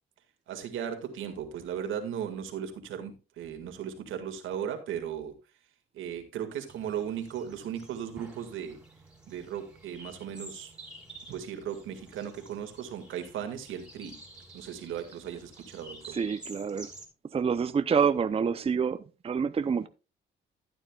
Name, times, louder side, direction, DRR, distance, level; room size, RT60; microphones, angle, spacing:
voice 1, 0.5-5.3 5.9-8.8 9.3-10.7 11.3-14.2 14.5-16.2, right 9 dB, 80° right, 2.0 m, -37 dB
sound 1, 6.7-17.1, right 2 dB, 5° right, 3.1 m, -50 dB
voice 2, 16.1-16.9 17.3-19.9, right 6 dB, 30° right, 0.6 m, -27 dB
14.0 x 9.1 x 2.3 m
cardioid pair, 90°, 20 cm